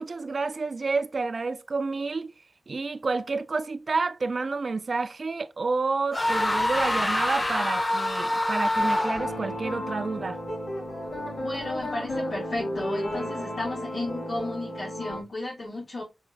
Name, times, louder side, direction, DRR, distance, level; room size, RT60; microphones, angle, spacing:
voice 1, 0.0-2.3 2.7-10.4, right 4 dB, 55° right, 0.3 m, -29 dB
sound 1, 6.1-9.5, left 1 dB, 30° left, 0.8 m, -26 dB
Road to purple sky - Guitar Loop, 8.8-15.2, left 1 dB, 85° left, 2.1 m, -33 dB
voice 2, 11.4-16.0, left 2 dB, 60° left, 2.7 m, -34 dB
5.0 x 3.7 x 2.2 m
cardioid pair, 45°, 0 cm